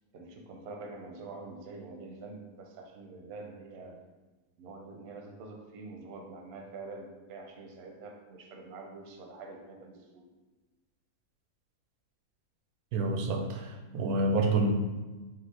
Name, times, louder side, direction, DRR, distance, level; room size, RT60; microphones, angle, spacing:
voice 1, 0.1-4.0 4.6-10.2, right 3 dB, 60° right, 3 dB, 0.7 m, -46 dB
voice 2, 12.9-14.7, right 2 dB, 90° right, 3 dB, 1.1 m, -28 dB
5.0 x 2.0 x 4.1 m, 1.2 s
omnidirectional pair, 1.5 m